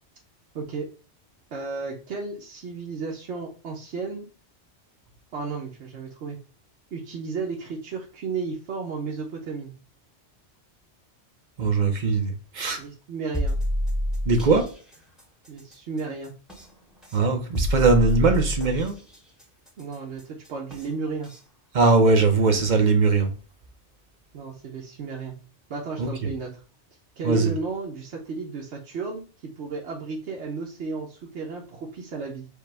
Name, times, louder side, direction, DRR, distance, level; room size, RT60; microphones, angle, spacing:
voice 1, 0.5-0.9 1.5-4.3 5.3-6.4 6.9-9.7 12.8-13.6 15.5-16.3 19.8-21.3 24.3-25.4 25.7-26.5 27.2-32.5, right 4 dB, 75° right, 1.1 m, -33 dB
voice 2, 11.6-12.8 14.3-14.7 17.1-19.0 21.7-23.3 26.0-26.1 27.2-27.5, right 3 dB, 45° right, 0.7 m, -20 dB
sound 1, 13.3-14.6 16.5-16.6 17.5-18.9 20.7-20.8 21.3-21.4, equal, ahead, 0.9 m, -26 dB
5.0 x 2.1 x 4.6 m
omnidirectional pair, 1.2 m